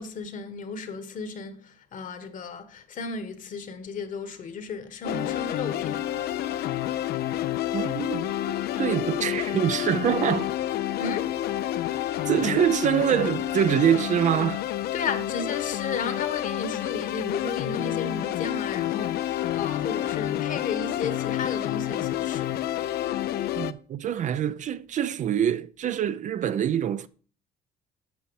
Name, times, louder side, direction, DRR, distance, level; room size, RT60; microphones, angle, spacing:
voice 1, 0.0-6.1 11.0-11.3 14.9-22.6, left 5 dB, 50° left, 1.3 m, -34 dB
sound 1, 5.0-23.7, left 12 dB, 70° left, 0.5 m, -29 dB
voice 2, 7.7-10.5 12.3-14.6 23.6-27.1, right 9 dB, 45° right, 0.5 m, -25 dB
8.4 x 5.8 x 4.7 m
cardioid pair, 110°, 17 cm